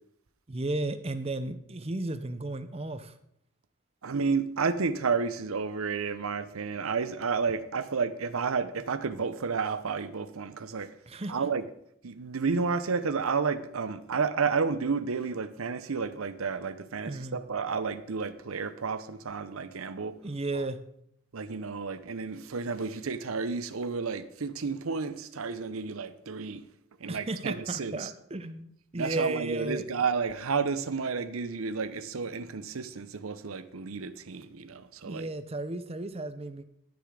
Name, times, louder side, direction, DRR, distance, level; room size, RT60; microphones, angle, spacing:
voice 1, 0.5-3.1 11.1-11.5 17.0-17.4 20.2-20.8 27.1-29.9 35.0-36.6, right 2 dB, 25° right, 11 dB, 0.6 m, -34 dB
voice 2, 4.0-10.9 11.3-11.7 12.0-20.2 21.3-26.7 27.0-28.1 29.0-35.3, right 5 dB, 75° right, 13 dB, 0.7 m, -31 dB
11.5 x 6.9 x 4.9 m, 0.73 s
head